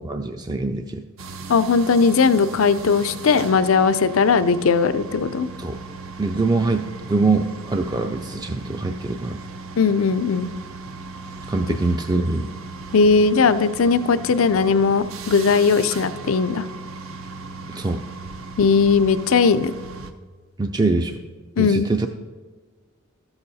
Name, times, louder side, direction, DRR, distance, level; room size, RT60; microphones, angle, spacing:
voice 1, 0.0-1.0 5.6-5.8 6.2-9.4 11.5-12.5 17.7-18.0 20.6-21.2 21.6-22.1, right 3 dB, 20° right, 6 dB, 0.4 m, -23 dB
sound 1, 1.2-20.1, right 3 dB, 80° right, 0.7 m, -37 dB
voice 2, 1.5-5.5 9.8-10.5 12.9-16.6 18.6-19.7 21.6-21.9, left 5 dB, 85° left, 12 dB, 0.5 m, -18 dB
13.0 x 8.0 x 4.1 m, 1.4 s
head